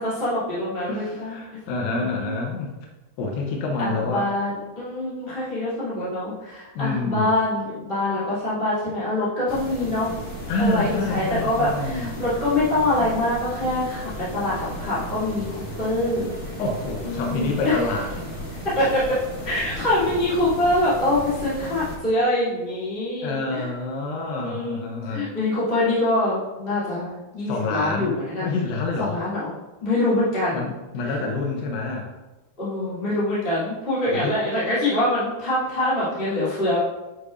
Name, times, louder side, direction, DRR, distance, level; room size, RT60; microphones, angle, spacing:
voice 1, 0.0-1.6 2.0-2.4 3.8-10.1 10.6-14.0 14.3-16.3 17.0-17.7 18.6-19.2 19.4-23.7 24.4-28.5 29.0-29.5 29.8-30.7 32.6-36.8, left 1 dB, 15° left, -11 dB, 2.3 m, -24 dB
voice 2, 0.9-2.7 3.2-4.3 6.8-7.3 10.5-12.1 16.6-18.1 23.2-25.3 27.5-29.2 30.5-32.1 34.1-34.4, left 3 dB, 85° left, 1 dB, 2.9 m, -27 dB
sound 1, 9.5-22.0, equal, 35° left, 1.0 m, -35 dB
9.9 x 6.6 x 2.5 m, 1.1 s
omnidirectional pair, 4.6 m